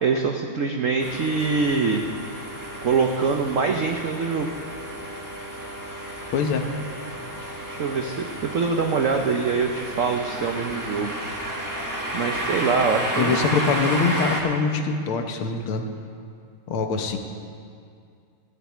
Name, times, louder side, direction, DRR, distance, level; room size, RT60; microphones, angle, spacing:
voice 1, 0.0-2.0 2.8-4.5 7.7-11.1 12.1-13.4, right 5 dB, 90° right, 3 dB, 0.7 m, -24 dB
sound 1, 1.0-14.4, right 1 dB, 10° right, 1.0 m, -32 dB
voice 2, 6.3-6.7 13.2-15.8 16.7-17.2, left 4 dB, 85° left, 5 dB, 1.9 m, -24 dB
13.5 x 6.8 x 8.4 m, 2.3 s
omnidirectional pair, 2.3 m